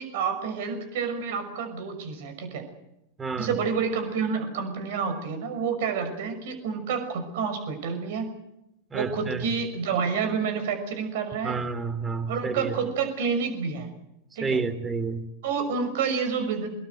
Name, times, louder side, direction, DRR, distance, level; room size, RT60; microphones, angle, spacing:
voice 1, 0.0-2.6 3.4-8.3 8.9-11.6 12.3-13.9 14.4-14.6 15.4-16.7, right 6 dB, 55° right, 8 dB, 6.0 m, -29 dB
voice 2, 8.9-9.5 11.4-12.7 14.4-15.2, right 4 dB, 15° right, 12 dB, 2.8 m, -29 dB
25.0 x 21.0 x 7.9 m, 0.86 s
figure-of-eight pair, 90°, 0 cm